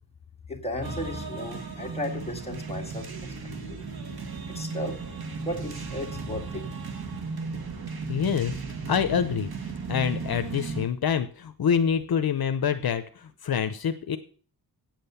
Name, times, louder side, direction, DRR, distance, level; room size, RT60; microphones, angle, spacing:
voice 1, 0.5-3.3 3.7-3.8 4.5-5.0 5.4-6.6, left 1 dB, 15° left, -1 dB, 2.1 m, -35 dB
sound 1, 0.8-10.9, right 4 dB, 75° right, 2.0 m, -35 dB
voice 2, 8.1-8.5 8.9-9.5 9.9-14.2, left 7 dB, 70° left, 9 dB, 0.8 m, -26 dB
9.1 x 7.7 x 6.8 m, 0.42 s
wide cardioid pair, 170°, 38 cm